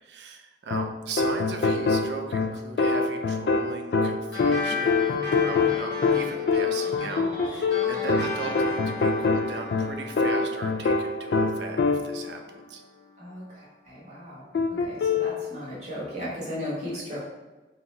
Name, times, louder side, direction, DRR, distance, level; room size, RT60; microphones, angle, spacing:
voice 1, 0.0-12.8 16.9-17.0, right 4 dB, 80° right, 4 dB, 0.5 m, -38 dB
sound 1, 0.7-12.3 14.5-15.4, left 4 dB, 65° left, 0.3 m, -25 dB
sound 2, 4.3-13.1, left 3 dB, 90° left, 1.1 m, -36 dB
voice 2, 13.2-14.5 14.8-17.2, equal, 40° right, -7 dB, 1.4 m, -36 dB
3.9 x 2.8 x 4.1 m, 1.2 s
head